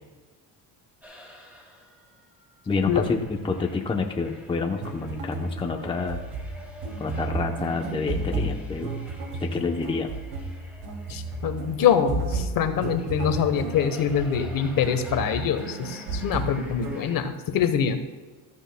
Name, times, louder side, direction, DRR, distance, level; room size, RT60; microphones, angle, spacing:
sound 1, 1.0-17.2, equal, 5° right, 2.7 m, -47 dB
voice 1, 2.7-6.2 7.0-8.9 9.4-10.1, left 4 dB, 15° left, 3 dB, 0.7 m, -28 dB
sound 2, 4.7-17.1, right 3 dB, 85° right, 2.5 m, -33 dB
voice 2, 11.1-18.0, left 8 dB, 55° left, 8 dB, 1.1 m, -24 dB
14.0 x 13.5 x 2.2 m, 1.3 s
cardioid pair, 160°, 39 cm